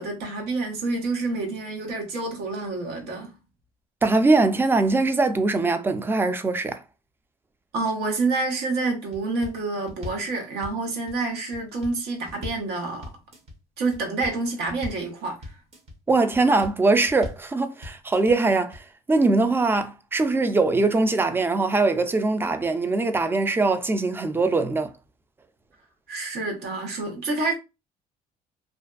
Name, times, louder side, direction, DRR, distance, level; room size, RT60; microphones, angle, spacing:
voice 1, 0.0-3.3 7.7-13.1 13.8-15.5 26.1-27.5, right 3 dB, 75° right, 0.9 m, -28 dB
voice 2, 4.0-6.8 16.1-24.9, right 3 dB, 15° right, 0.3 m, -22 dB
sound 1, 9.1-9.6 9.9-10.3 10.6-11.1 11.5-12.0 12.3-12.7 13.0-13.5 13.9-14.4 14.7-15.1 15.4-15.9 16.3-16.8 17.1-17.5 17.8-18.3 18.7-18.8, left 1 dB, 40° right, 0.8 m, -39 dB
2.5 x 2.2 x 2.4 m
cardioid pair, 110°, 17 cm